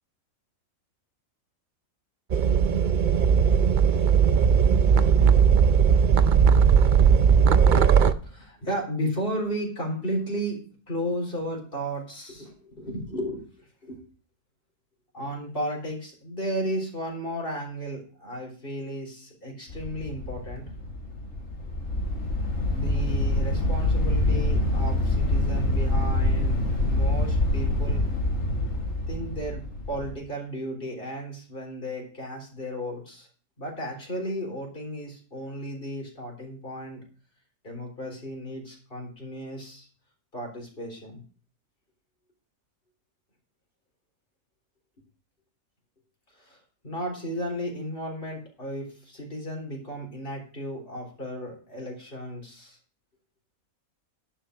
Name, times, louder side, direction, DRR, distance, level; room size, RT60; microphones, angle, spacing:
sound 1, 2.3-8.1, right 7 dB, 55° right, 0.5 m, -18 dB
voice 1, 8.2-14.0 15.1-20.7 22.7-28.1 29.0-33.3 33.6-37.0 37.6-39.9 40.3-41.2 46.3-52.8, equal, 40° left, 0 dB, 4.1 m, -34 dB
sound 2, 19.7-30.1, left 1 dB, 60° left, 2.3 m, -26 dB
11.5 x 6.0 x 6.3 m, 0.40 s
omnidirectional pair, 1.5 m